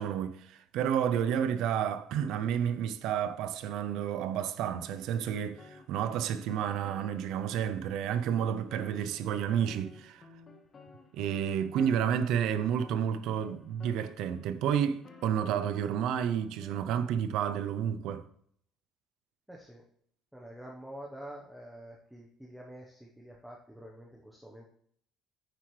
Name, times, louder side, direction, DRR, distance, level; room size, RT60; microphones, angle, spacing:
voice 1, 0.0-10.3 11.1-18.2, right 9 dB, 70° right, 0.6 m, -30 dB
sound 1, 5.3-7.8 8.2-16.0 16.4-17.0, left 3 dB, 35° left, 1.5 m, -54 dB
voice 2, 19.5-19.8 20.3-24.7, right 1 dB, 5° right, 1.1 m, -47 dB
9.1 x 7.4 x 3.3 m
cardioid pair, 130°, 0 cm